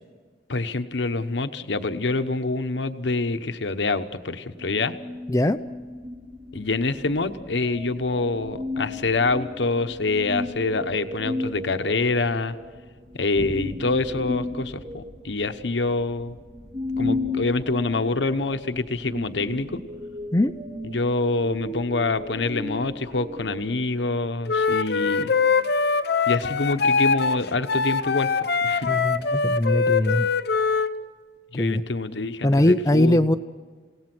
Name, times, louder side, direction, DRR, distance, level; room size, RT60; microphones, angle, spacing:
voice 1, 0.5-4.9 6.5-12.6 13.2-16.4 17.0-19.8 20.9-25.3 26.3-28.9 31.5-33.4, left 3 dB, 90° left, 9 dB, 1.0 m, -26 dB
sound 1, 4.6-23.7, left 2 dB, 50° right, 4.1 m, -34 dB
Wind instrument woodwind instrument, 24.5-30.9, left 5 dB, 65° left, 0.8 m, -23 dB
voice 2, 28.9-30.3 31.5-31.8 32.4-33.4, left 1 dB, 20° left, 9 dB, 0.5 m, -21 dB
29.0 x 17.5 x 6.1 m, 1.5 s
head